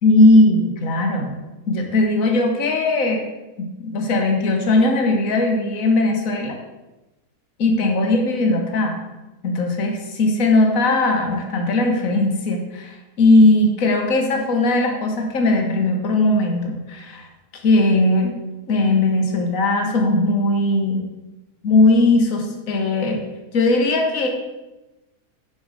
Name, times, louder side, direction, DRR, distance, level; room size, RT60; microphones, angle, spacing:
voice 1, 0.0-1.3 1.7-3.2 3.6-6.6 7.6-9.0 9.4-17.3 17.6-18.4 18.7-21.0 21.6-23.2 23.5-24.3, left 2 dB, 55° left, 2 dB, 1.6 m, -18 dB
7.2 x 6.3 x 5.0 m, 1.0 s
omnidirectional pair, 1.7 m